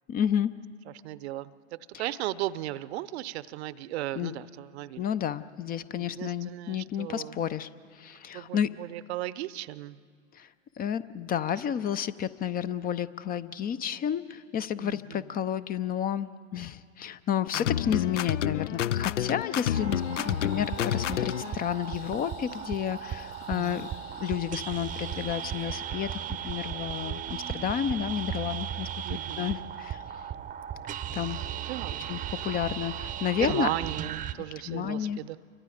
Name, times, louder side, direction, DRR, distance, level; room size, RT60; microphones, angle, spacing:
voice 1, 0.1-0.5 4.2-4.4 5.0-8.7 10.3-10.5 10.8-23.9 24.2-29.0 29.4-30.0 31.1-31.4 32.0-33.7 34.7-35.2, left 9 dB, 25° left, 14 dB, 0.6 m, -31 dB
voice 2, 1.0-5.0 6.0-7.4 8.3-10.0 14.8-15.2 23.5-24.0 29.0-29.7 31.7-32.1 33.4-35.4, right 15 dB, 60° right, 18 dB, 0.8 m, -36 dB
sound 1, 17.5-21.5, left 11 dB, 75° left, 0.6 m, -29 dB
sound 2, 19.7-34.3, right 10 dB, 20° right, 0.8 m, -36 dB
sound 3, 19.9-25.7, left 9 dB, 55° left, 7.7 m, -53 dB
29.0 x 24.5 x 5.0 m, 2.1 s
hypercardioid pair, 100°, 37 cm